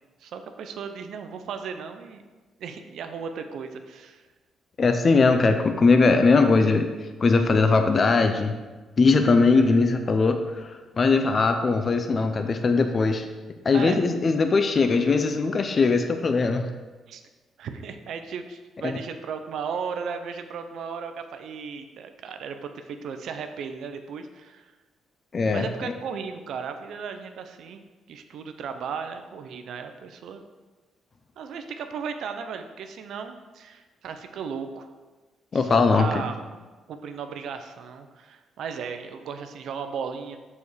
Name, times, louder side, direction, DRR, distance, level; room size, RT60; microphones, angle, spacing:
voice 1, 0.2-2.2 2.6-4.2 13.7-14.0 17.1-17.2 17.6-24.7 25.5-30.4 31.4-34.9 35.5-36.4 36.9-40.4, right 6 dB, 70° right, 7 dB, 0.6 m, -36 dB
voice 2, 4.8-6.9 7.2-8.5 9.0-10.7 11.0-13.2 13.6-16.7 18.8-18.9 25.3-25.7 35.5-36.2, left 4 dB, 40° left, 7 dB, 0.6 m, -20 dB
6.9 x 4.2 x 4.8 m, 1.3 s
cardioid pair, 90°, 0 cm